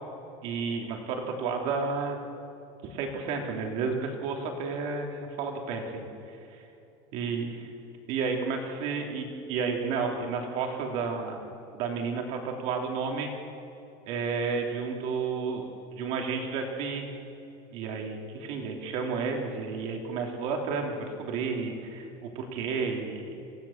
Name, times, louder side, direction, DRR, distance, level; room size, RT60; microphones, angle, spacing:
voice 1, 0.4-2.2 2.8-6.4 7.1-7.7 8.1-11.4 11.7-13.3 14.1-17.1 17.7-23.3, right 5 dB, 45° right, 2 dB, 3.3 m, -31 dB
28.5 x 17.5 x 7.4 m, 2.8 s
cardioid pair, 180°, 14 cm